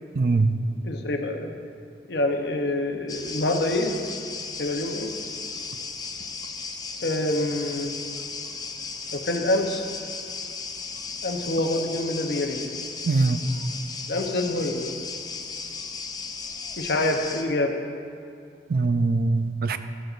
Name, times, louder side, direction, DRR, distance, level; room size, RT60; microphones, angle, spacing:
voice 1, 0.2-0.5 13.1-13.4 18.7-19.8, right 3 dB, 55° right, 10 dB, 0.4 m, -22 dB
voice 2, 0.8-1.5 2.1-4.0 4.6-5.1 7.0-7.9 9.1-9.8 11.2-12.7 14.1-14.9 16.8-17.7, left 1 dB, 70° left, 4 dB, 0.8 m, -26 dB
sound 1, 3.1-17.4, left 4 dB, 20° left, 0.5 m, -35 dB
13.0 x 7.9 x 2.5 m, 2.5 s
head